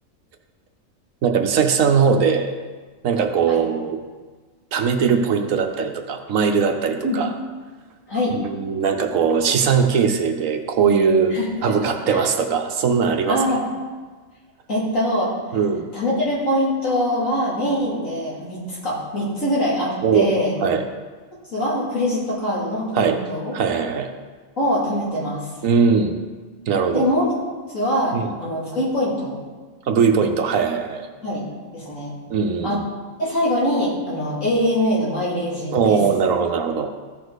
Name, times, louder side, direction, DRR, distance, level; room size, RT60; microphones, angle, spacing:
voice 1, 1.2-2.5 3.0-4.0 4.7-7.3 8.3-11.4 11.6-13.4 15.5-15.8 20.0-20.3 20.6-20.8 23.0-23.2 23.5-24.1 25.6-26.1 26.7-27.0 28.1-28.3 29.9-31.1 32.3-32.8 35.7-36.9, right 6 dB, 75° right, 5 dB, 1.2 m, -20 dB
voice 2, 11.3-11.8 12.1-12.2 13.3-13.6 14.7-15.3 15.9-20.5 21.5-23.5 24.6-25.5 26.9-29.4 31.2-31.5 31.7-32.1 32.6-32.8 33.2-36.0, equal, 70° left, -7 dB, 3.3 m, -23 dB
14.5 x 5.0 x 4.1 m, 1.4 s
omnidirectional pair, 1.4 m